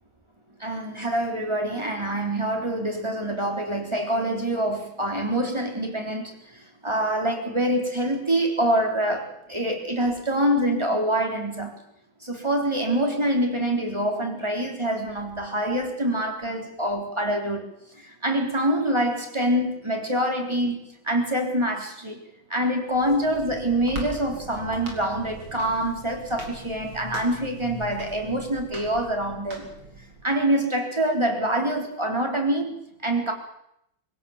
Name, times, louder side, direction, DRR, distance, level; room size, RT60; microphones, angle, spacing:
voice 1, 0.6-6.3 6.8-11.7 12.2-17.7 18.0-20.8 21.0-22.2 22.5-29.7 30.2-33.3, right 1 dB, 15° right, 3 dB, 3.8 m, -25 dB
sound 1, 22.9-30.3, right 1 dB, 90° right, 4.9 m, -40 dB
24.5 x 16.5 x 7.4 m, 0.75 s
omnidirectional pair, 2.2 m